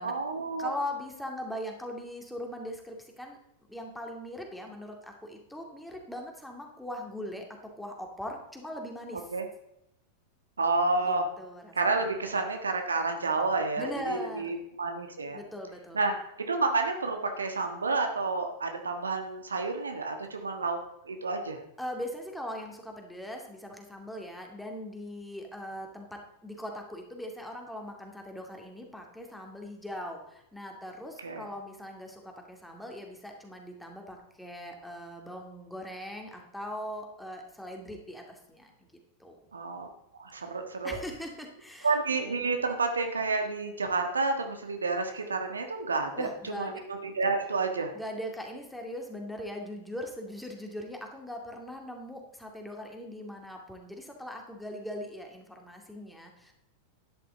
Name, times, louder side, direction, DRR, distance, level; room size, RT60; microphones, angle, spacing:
voice 1, 0.0-0.7 9.3-9.4 10.6-11.3 11.7-15.4 15.9-20.8 21.0-21.6 31.2-31.4 39.5-39.9 40.2-41.0 41.8-47.9, right 3 dB, 75° right, 5 dB, 1.4 m, -30 dB
voice 2, 0.6-3.4 3.7-7.4 7.8-9.3 11.0-12.1 13.8-14.6 15.3-16.0 21.8-38.7 39.2-39.4 40.8-42.0 46.2-46.8 47.9-56.5, left 1 dB, 5° left, 2 dB, 2.4 m, -40 dB
12.5 x 10.0 x 3.9 m, 0.82 s
figure-of-eight pair, 90°, 0 cm